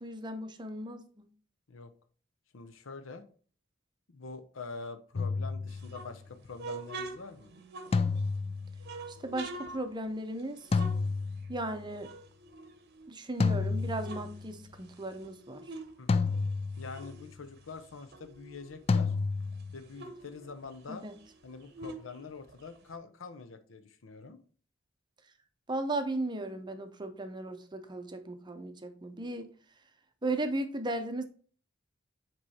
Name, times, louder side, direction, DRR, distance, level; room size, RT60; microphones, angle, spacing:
voice 1, 0.0-1.3 9.2-10.6 11.5-12.1 13.1-15.6 20.9-21.1 25.7-29.5 30.2-31.2, right 2 dB, 25° right, 0.6 m, -36 dB
voice 2, 2.5-3.3 4.1-7.5 16.0-16.3 16.8-19.1 19.7-21.1 21.4-24.4, left 4 dB, 90° left, 0.7 m, -45 dB
sound 1, 5.2-6.2 7.9-9.1 10.7-11.9 13.4-14.6 16.1-17.2 18.9-19.8, left 4 dB, 30° left, 0.4 m, -30 dB
sound 2, 5.7-8.4 8.8-11.7 12.0-13.3 13.7-16.0 16.3-18.8 19.2-19.3 19.5-22.9, right 3 dB, 55° right, 0.8 m, -46 dB
7.6 x 3.1 x 4.2 m
head